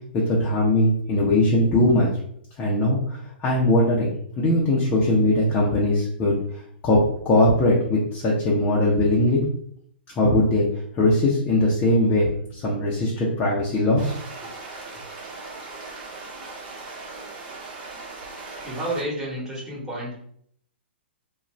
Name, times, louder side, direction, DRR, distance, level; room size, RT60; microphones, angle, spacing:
voice 1, 0.1-2.1 2.6-6.4 6.8-9.4 10.2-10.7 11.0-14.1, left 1 dB, 25° left, -5 dB, 0.7 m, -20 dB
sound 1, 14.0-19.0, right 3 dB, 50° right, 1.0 m, -38 dB
voice 2, 18.6-20.1, right 1 dB, 5° right, -7 dB, 1.2 m, -30 dB
2.5 x 2.2 x 3.1 m, 0.66 s
hypercardioid pair, 120°, 6 cm